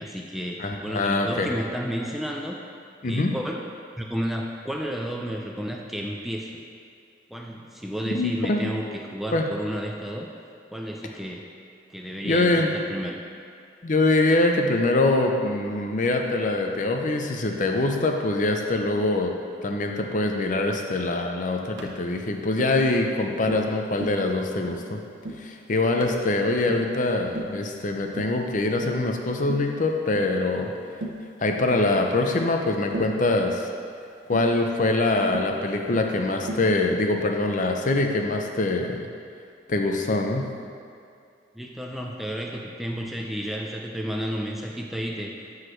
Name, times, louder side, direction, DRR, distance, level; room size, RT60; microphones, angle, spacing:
voice 1, 0.0-2.6 3.0-6.5 7.3-10.3 10.7-11.5 11.9-13.2 41.5-45.3, equal, ahead, -1 dB, 0.4 m, -32 dB
voice 2, 0.6-1.5 3.0-3.3 8.1-8.7 9.3-9.4 12.2-12.7 13.8-19.3 19.6-25.0 25.4-30.7 31.4-33.7 34.3-39.1 39.7-40.5, left 2 dB, 45° left, 3 dB, 0.6 m, -24 dB
Tap, 21.8-22.0 22.6-22.8 23.5-23.7 24.0-24.2 24.7-24.9 25.2-25.5 26.0-26.2 26.7-26.9 27.3-27.6 28.2-28.4 28.8-29.1 29.5-29.7 30.1-30.3 31.0-31.3 31.7-31.9 32.9-33.2 34.3-34.5 35.3-35.6 35.9-36.2 36.5-36.7, right 1 dB, 85° right, 0.8 m, -35 dB
12.0 x 4.9 x 3.1 m, 2.4 s
head